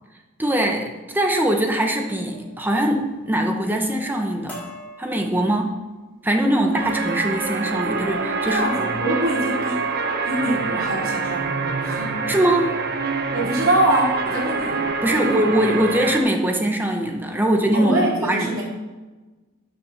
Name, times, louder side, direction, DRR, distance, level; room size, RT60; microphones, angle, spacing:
voice 1, 0.4-4.6 5.0-5.7 6.2-8.6 12.3-12.7 15.0-18.5, right 1 dB, 10° right, 2 dB, 1.0 m, -22 dB
sound 1, 1.3-1.6 2.3-2.6 2.9-3.4 3.8-4.1 4.5-5.8 6.4-6.6 7.0-7.4, equal, 5° left, 3.8 m, -43 dB
sound 2, 6.7-16.2, right 4 dB, 50° right, 1.0 m, -26 dB
voice 2, 8.5-12.2 13.3-14.8 15.2-15.4 17.7-18.6, right 1 dB, 65° right, -4 dB, 3.7 m, -24 dB
9.2 x 6.4 x 6.6 m, 1.2 s
head